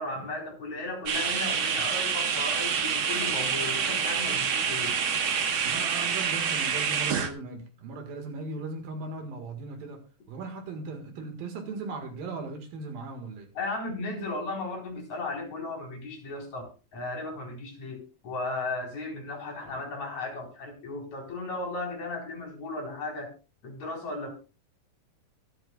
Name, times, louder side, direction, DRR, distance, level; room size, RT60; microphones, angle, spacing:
voice 1, 0.0-4.9 13.6-23.3 23.6-24.4, left 2 dB, 50° left, 1 dB, 5.3 m, -35 dB
sound 1, 1.1-7.3, right 6 dB, 55° right, 1.5 m, -27 dB
voice 2, 5.6-13.5, right 3 dB, 80° right, 4 dB, 3.4 m, -38 dB
24.0 x 9.0 x 2.4 m, 0.32 s
omnidirectional pair, 4.1 m